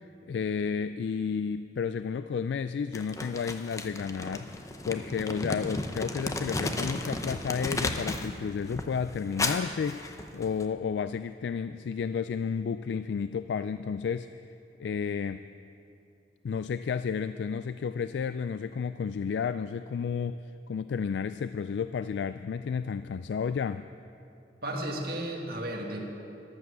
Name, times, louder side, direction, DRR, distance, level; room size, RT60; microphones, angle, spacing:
voice 1, 0.3-4.5 4.9-14.3 14.8-15.4 16.4-20.4 20.7-23.8, left 6 dB, 80° left, 12 dB, 0.3 m, -32 dB
Crumpling crinkling, 2.9-8.3 8.6-10.6, left 2 dB, 20° left, 0.7 m, -34 dB
voice 2, 24.6-26.1, right 1 dB, 60° right, 0 dB, 1.9 m, -34 dB
14.0 x 12.0 x 6.9 m, 2.7 s
head